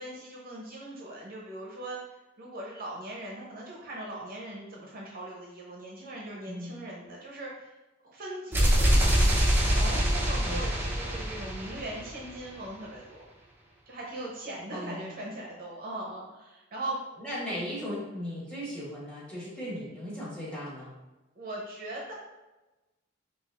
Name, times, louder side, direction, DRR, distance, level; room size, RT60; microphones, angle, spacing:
voice 1, 0.0-2.0 2.4-7.7 8.0-13.2 13.9-17.0 21.4-22.1, right 1 dB, 50° right, -3 dB, 0.7 m, -40 dB
voice 2, 6.4-6.8 10.4-10.7 14.7-15.1 17.2-20.9, equal, 5° left, -7 dB, 1.4 m, -37 dB
sound 1, 8.5-12.4, equal, 10° right, 0.6 m, -24 dB
5.1 x 2.4 x 2.4 m, 1.1 s
head